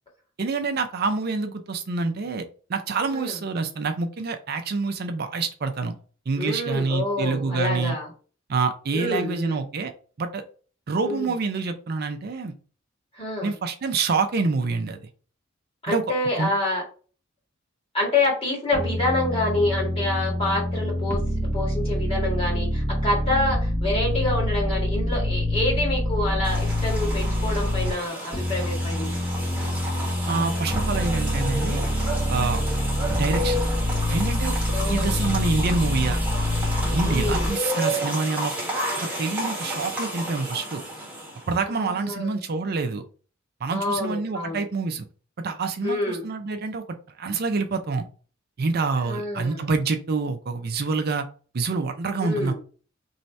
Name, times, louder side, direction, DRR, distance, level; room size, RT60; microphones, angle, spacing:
voice 1, 0.4-5.9 6.3-8.0 8.5-9.9 10.2-10.4 10.9-12.5 13.4-15.1 15.9-16.0 16.3-16.5 30.3-31.9 32.3-32.6 33.1-33.6 34.1-34.6 34.9-36.2 36.9-38.5 39.0-40.8 41.5-43.0 43.6-45.1 45.4-46.8 47.2-48.1 48.6-51.3 51.5-52.5, right 4 dB, 50° right, 6 dB, 0.5 m, -26 dB
voice 2, 6.3-8.1 8.9-9.6 11.0-11.3 13.1-13.5 15.8-16.8 17.9-29.1 34.7-35.3 37.1-37.5 41.7-42.4 43.7-44.6 45.8-46.3 49.0-49.7 52.2-52.5, left 2 dB, 30° left, -3 dB, 1.8 m, -27 dB
sound 1, 18.7-27.9 28.3-37.5, left 1 dB, 10° left, 0.9 m, -26 dB
sound 2, 26.4-41.6, equal, 10° right, 1.3 m, -31 dB
3.1 x 2.7 x 4.4 m, 0.39 s
head